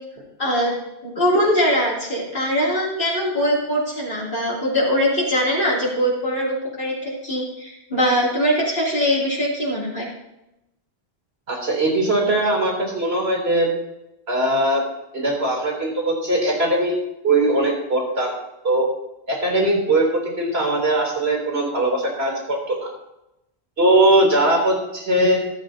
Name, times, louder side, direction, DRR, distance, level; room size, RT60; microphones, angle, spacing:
voice 1, 0.4-0.7 1.0-10.1, equal, 55° left, -7 dB, 3.2 m, -22 dB
voice 2, 11.5-13.7 14.3-14.8 15.1-16.9 17.2-18.3 18.6-18.9 19.3-22.9 23.8-25.4, right 1 dB, 70° right, -1 dB, 3.5 m, -20 dB
14.5 x 13.5 x 2.8 m, 0.89 s
omnidirectional pair, 1.1 m